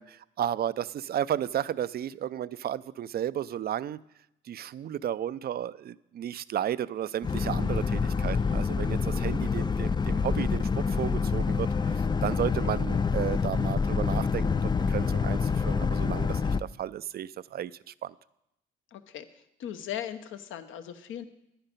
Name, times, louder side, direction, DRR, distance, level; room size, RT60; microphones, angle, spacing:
voice 1, 0.0-4.0 4.5-18.1, right 10 dB, 50° right, 18 dB, 0.5 m, -33 dB
Boat Water vehicle, 7.2-16.6, left 5 dB, 20° left, 0.4 m, -27 dB
voice 2, 18.9-19.3 19.6-21.3, left 10 dB, 70° left, 10 dB, 1.0 m, -38 dB
10.5 x 10.0 x 5.3 m, 0.83 s
supercardioid pair, 60°, 21 cm